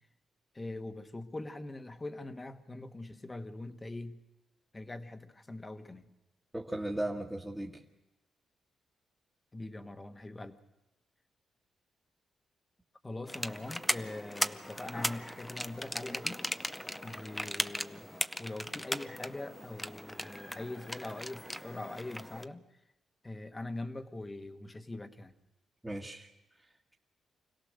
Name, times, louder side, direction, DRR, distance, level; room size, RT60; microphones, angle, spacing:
voice 1, 0.5-4.2 4.7-6.1 9.5-10.6 13.0-16.4 17.0-18.1 18.4-22.7 23.2-25.4, left 2 dB, 20° left, 8 dB, 1.4 m, -42 dB
voice 2, 6.5-7.8 25.8-26.3, right 1 dB, 10° right, -2 dB, 1.7 m, -36 dB
sound 1, 13.3-22.4, left 1 dB, 5° left, 0.7 m, -38 dB
25.5 x 17.0 x 6.5 m, 0.98 s
cardioid pair, 80°, 0 cm